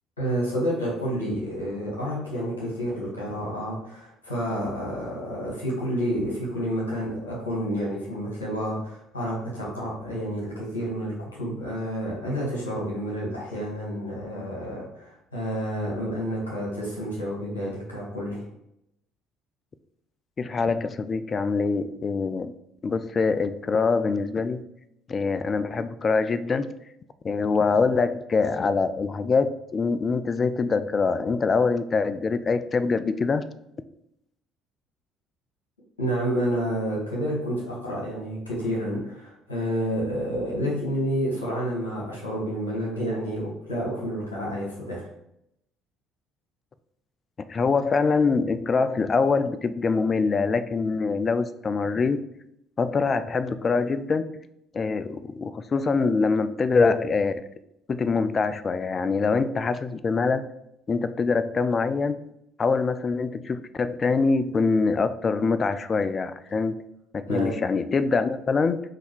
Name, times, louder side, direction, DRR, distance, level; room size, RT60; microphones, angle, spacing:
voice 1, 0.2-18.4 36.0-45.0 67.3-67.5, equal, 85° left, -5 dB, 1.3 m, -29 dB
voice 2, 20.4-22.5 22.8-24.6 25.1-26.7 27.2-33.4 47.5-52.2 52.8-54.3 54.7-57.4 57.9-60.5 60.9-62.2 62.6-66.7 67.1-68.8, left 4 dB, 35° left, 13 dB, 0.3 m, -24 dB
3.8 x 2.7 x 4.4 m, 0.79 s
figure-of-eight pair, 55°, 0 cm